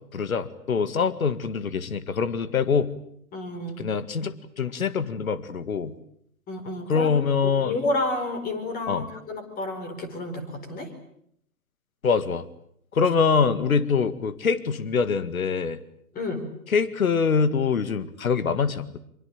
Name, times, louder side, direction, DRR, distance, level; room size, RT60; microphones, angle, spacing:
voice 1, 0.1-2.9 3.8-5.9 6.9-7.7 8.9-9.1 12.0-12.5 12.9-15.8 16.7-19.0, left 5 dB, 65° left, 13 dB, 2.0 m, -24 dB
voice 2, 3.3-3.8 6.5-7.1 7.4-10.9 16.1-16.4, left 2 dB, 20° left, 7 dB, 4.7 m, -30 dB
25.0 x 24.0 x 8.8 m, 0.69 s
figure-of-eight pair, 120°, 45 cm